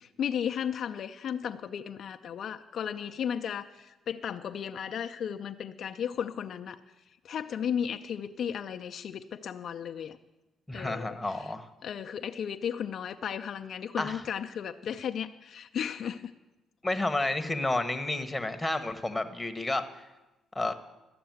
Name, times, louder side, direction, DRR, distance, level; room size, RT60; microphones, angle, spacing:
voice 1, 0.0-6.8 7.2-10.2 10.7-11.5 11.8-16.3, left 8 dB, 65° left, 7 dB, 0.5 m, -35 dB
voice 2, 10.7-11.7 14.0-14.2 16.8-20.1 20.5-20.7, left 2 dB, 10° left, 7 dB, 1.0 m, -31 dB
13.0 x 6.7 x 9.2 m, 1.1 s
cardioid pair, 90°, 0 cm